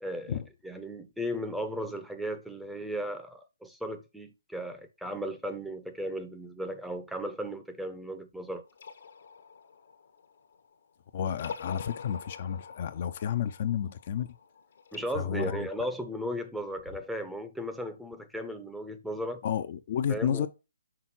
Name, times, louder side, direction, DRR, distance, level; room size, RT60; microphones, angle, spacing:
voice 1, 0.0-0.4 0.6-8.6 14.9-19.4 20.1-20.5, equal, ahead, 0.6 m, -36 dB
sound 1, 8.7-10.9 11.3-15.0, left 6 dB, 65° left, 1.0 m, -46 dB
voice 2, 11.1-14.3 15.1-15.7 19.4-20.5, left 8 dB, 45° left, 0.5 m, -31 dB
6.0 x 3.7 x 4.3 m
hypercardioid pair, 145°, 0 cm